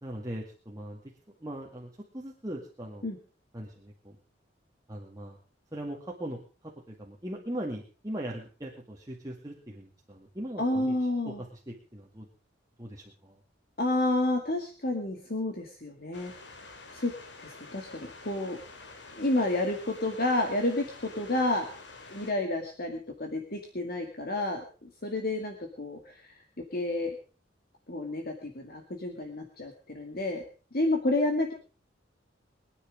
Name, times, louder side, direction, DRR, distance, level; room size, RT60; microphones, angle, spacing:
voice 1, 0.0-1.1 1.4-3.1 3.5-4.2 4.9-5.4 5.7-11.0 11.2-12.3 12.8-13.4, right 1 dB, 20° right, -2 dB, 2.1 m, -40 dB
voice 2, 10.6-11.4 13.8-16.3 16.9-17.1 17.4-18.6 19.1-21.7 22.1-26.4 26.7-27.1 27.9-30.4 30.7-31.5, left 2 dB, 55° left, 3 dB, 2.1 m, -30 dB
sound 1, 16.1-22.3, left 3 dB, 70° left, 2.5 m, -48 dB
22.5 x 9.9 x 5.2 m, 0.38 s
head